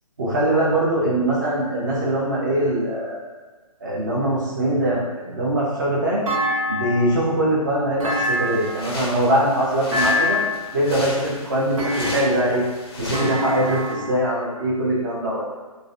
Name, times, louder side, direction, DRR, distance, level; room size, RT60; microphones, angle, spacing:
voice 1, 0.2-3.2 3.8-6.2 6.7-10.4 10.7-12.6 13.0-15.4, right 1 dB, 30° right, -5 dB, 0.5 m, -22 dB
Thump thud, 6.3-7.2 8.0-8.9 9.9-10.7 11.8-12.5 13.1-14.1, left 1 dB, 60° right, 0.8 m, -25 dB
sound 1, 8.1-13.9, left 2 dB, 40° left, 0.4 m, -35 dB
2.5 x 2.0 x 2.4 m, 1.3 s
hypercardioid pair, 170°, 19 cm